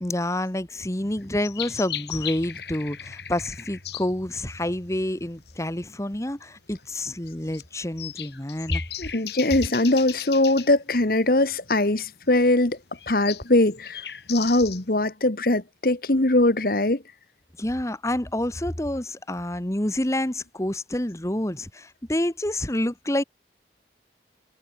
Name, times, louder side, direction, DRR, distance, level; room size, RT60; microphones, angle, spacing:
voice 1, 0.0-8.8 17.6-23.2, left 1 dB, 15° left, 1.3 m, -28 dB
sound 1, 0.9-15.0, left 10 dB, 70° left, 6.5 m, -38 dB
voice 2, 9.0-12.8 13.1-17.0, left 2 dB, 55° left, 1.5 m, -21 dB
head